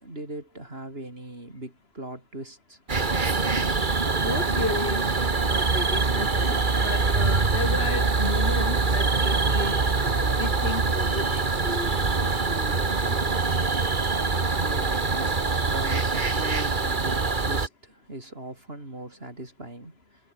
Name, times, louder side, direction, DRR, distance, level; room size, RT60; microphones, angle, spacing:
voice 1, 0.0-2.8 14.6-20.0, right 1 dB, 70° right, 6.0 m, -39 dB
sound 1, 2.9-17.7, right 4 dB, 50° right, 1.9 m, -24 dB
voice 2, 4.2-5.2 5.5-13.2, left 3 dB, 70° left, 2.8 m, -34 dB
omnidirectional pair, 1.1 m